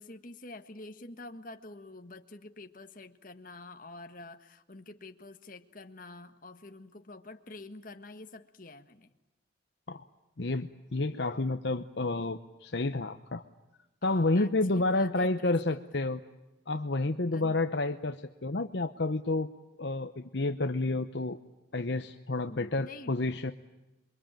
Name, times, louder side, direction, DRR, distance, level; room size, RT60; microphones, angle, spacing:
voice 1, 0.0-9.1 14.0-15.8 17.3-17.7 22.5-23.1, left 2 dB, 45° left, 7 dB, 1.5 m, -47 dB
voice 2, 10.4-13.4 14.0-16.2 16.7-19.5 19.8-21.4 21.7-23.5, left 2 dB, 60° left, 8 dB, 0.9 m, -30 dB
28.0 x 23.0 x 9.1 m, 1.0 s
head